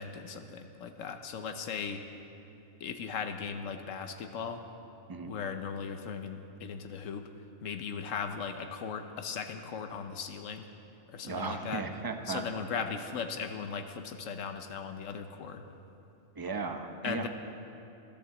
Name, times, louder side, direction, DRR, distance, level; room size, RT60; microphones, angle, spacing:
voice 1, 0.0-2.0 2.8-4.6 5.2-7.3 7.6-10.7 11.1-11.9 12.3-15.6 17.0-17.3, left 6 dB, 80° left, 7 dB, 1.1 m, -38 dB
voice 2, 11.2-12.4 12.7-12.8 16.4-17.3, right 4 dB, 20° right, 6 dB, 0.6 m, -36 dB
12.5 x 12.0 x 7.1 m, 2.8 s
omnidirectional pair, 1.3 m